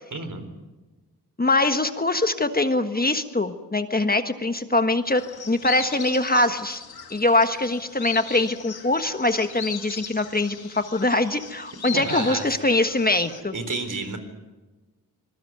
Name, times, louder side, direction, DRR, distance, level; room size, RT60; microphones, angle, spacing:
voice 1, 0.1-0.5 11.9-12.8 13.5-14.2, right 3 dB, 50° right, 9 dB, 4.1 m, -31 dB
voice 2, 1.4-5.2 5.5-6.8 7.1-13.5, left 2 dB, 25° left, 8 dB, 1.5 m, -23 dB
sound 1, 5.1-13.4, left 6 dB, 70° left, 2.4 m, -38 dB
25.5 x 21.0 x 9.4 m, 1.2 s
wide cardioid pair, 90°, 38 cm